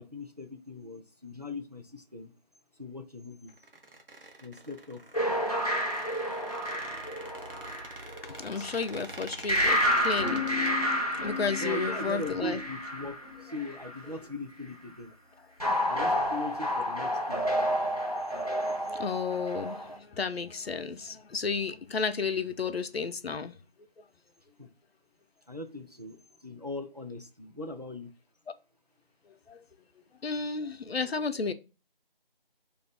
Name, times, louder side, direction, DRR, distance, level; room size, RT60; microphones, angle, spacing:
voice 1, 0.0-2.3 2.8-3.5 4.4-5.0 8.1-8.2 11.6-15.1 15.9-17.4 24.6-24.7 25.5-28.1, left 1 dB, 45° right, 0.4 m, -40 dB
Squeak, 3.5-10.7, right 2 dB, 65° right, 0.8 m, -46 dB
sound 1, 5.1-8.8 9.5-14.0 15.6-20.0, equal, 40° left, 0.4 m, -30 dB
voice 2, 8.2-12.6 18.3-23.6 29.5-29.6 30.2-31.5, left 5 dB, 85° left, 0.6 m, -33 dB
2.5 x 2.0 x 3.4 m
figure-of-eight pair, 180°, 30 cm